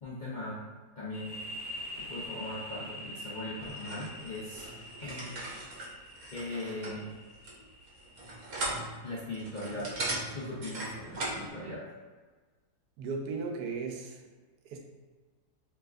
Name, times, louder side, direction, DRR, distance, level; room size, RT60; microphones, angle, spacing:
voice 1, 0.0-0.6 1.0-1.4 2.0-4.7 5.0-5.4 6.3-7.2 9.0-10.0 10.3-11.8, left 1 dB, 80° left, -7 dB, 0.4 m, -39 dB
sound 1, 1.1-8.6, left 1 dB, 65° left, 1.4 m, -45 dB
sound 2, 3.6-11.5, right 2 dB, 55° right, 1.2 m, -39 dB
voice 2, 13.0-14.2 14.6-14.8, right 4 dB, 80° right, 2 dB, 1.2 m, -36 dB
4.6 x 3.2 x 2.5 m, 1.4 s
omnidirectional pair, 1.7 m